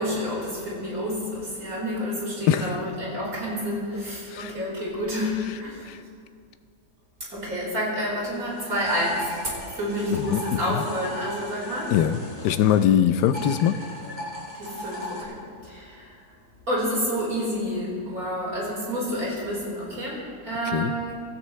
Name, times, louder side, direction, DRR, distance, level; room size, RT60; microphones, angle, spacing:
voice 1, 0.0-5.8 7.3-9.2 9.8-11.9 14.6-15.0 15.3-15.4 15.7-15.9 16.7-20.2 20.4-21.2, equal, 55° right, -5 dB, 5.1 m, -29 dB
sound 1, 8.3-12.9 13.2-15.2, equal, 15° right, 4.9 m, -38 dB
voice 2, 10.1-10.8 11.9-13.8 20.7-20.9, left 10 dB, 75° left, 11 dB, 1.2 m, -22 dB
25.0 x 13.0 x 3.2 m, 2.3 s
omnidirectional pair, 1.8 m